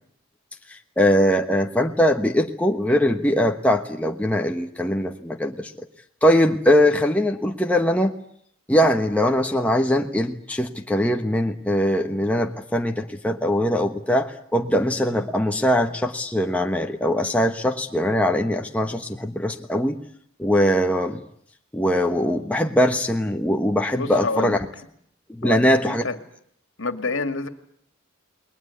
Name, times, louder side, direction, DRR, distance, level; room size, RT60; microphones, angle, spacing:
voice 1, 0.7-5.7 6.2-8.1 8.7-20.0 20.4-21.2 21.7-24.6 25.3-26.0, equal, 5° left, 3 dB, 1.2 m, -21 dB
voice 2, 23.9-24.6 25.4-26.2 26.8-27.5, left 3 dB, 65° left, 9 dB, 2.2 m, -28 dB
29.5 x 21.0 x 8.5 m, 0.68 s
head